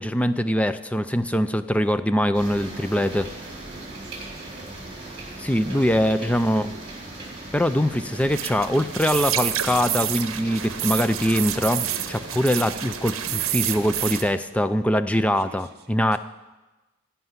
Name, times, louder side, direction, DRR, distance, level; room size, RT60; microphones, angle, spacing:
voice 1, 0.0-3.3 5.4-6.7 7.5-16.2, equal, 5° left, 12 dB, 0.3 m, -23 dB
sound 1, 2.3-14.3, right 2 dB, 25° right, 3.5 m, -39 dB
voice 2, 3.7-4.6 5.6-6.8 15.4-16.2, right 3 dB, 50° right, 7 dB, 1.0 m, -47 dB
sound 2, 8.1-14.2, right 11 dB, 70° right, 0.8 m, -29 dB
15.5 x 5.8 x 9.5 m, 1.1 s
head